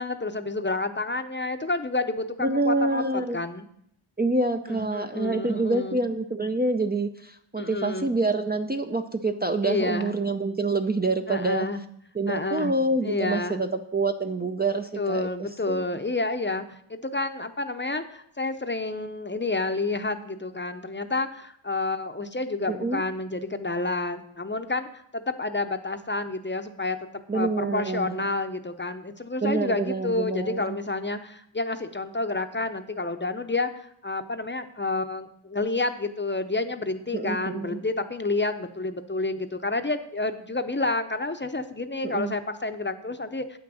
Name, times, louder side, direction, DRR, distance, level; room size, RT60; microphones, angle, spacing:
voice 1, 0.0-3.7 4.7-6.1 7.6-8.1 9.6-10.2 11.3-11.8 12.3-12.7 13.0-13.6 15.0-24.9 25.1-27.0 27.3-43.6, left 2 dB, 25° left, 8 dB, 0.7 m, -29 dB
voice 2, 2.4-3.4 4.2-11.7 12.1-15.3 15.7-15.9 22.7-23.0 27.3-28.3 29.4-30.8 37.1-37.8 42.0-42.3, right 2 dB, 20° right, 5 dB, 0.5 m, -27 dB
8.7 x 6.0 x 6.3 m, 0.71 s
wide cardioid pair, 60°, 49 cm